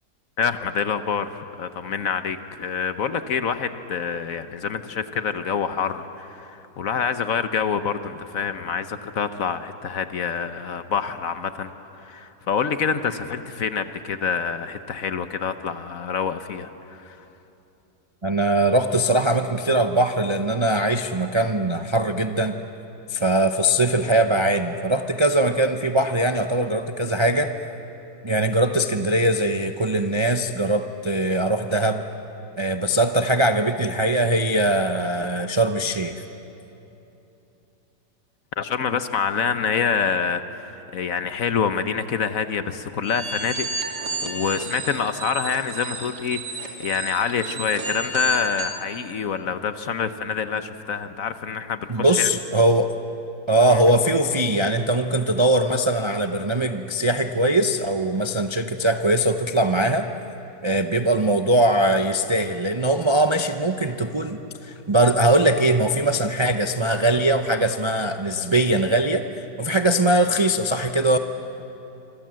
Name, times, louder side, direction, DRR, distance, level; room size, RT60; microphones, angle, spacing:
voice 1, 0.4-11.7 12.0-17.2 38.6-52.3 53.7-53.8, left 6 dB, 55° left, 10 dB, 1.2 m, -26 dB
voice 2, 18.2-22.5 23.1-27.5 28.2-32.0 32.6-36.2 51.9-52.9 53.5-60.1 60.6-69.2 69.6-71.2, right 1 dB, 30° right, 6 dB, 0.5 m, -21 dB
sound 1, 43.0-48.8, right 3 dB, 70° right, 3.1 m, -32 dB
26.5 x 26.0 x 7.6 m, 3.0 s
omnidirectional pair, 1.8 m